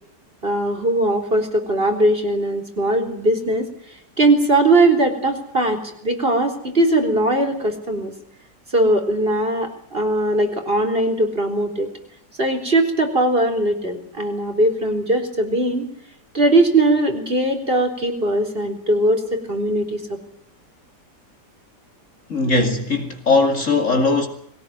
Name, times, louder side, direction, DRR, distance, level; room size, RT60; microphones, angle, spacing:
voice 1, 0.4-3.7 4.2-8.1 8.7-11.9 12.4-15.9 16.3-20.2, right 1 dB, 30° right, 4.2 m, -20 dB
voice 2, 22.3-24.3, left 3 dB, 45° left, 2.9 m, -19 dB
22.0 x 18.5 x 9.4 m
omnidirectional pair, 1.8 m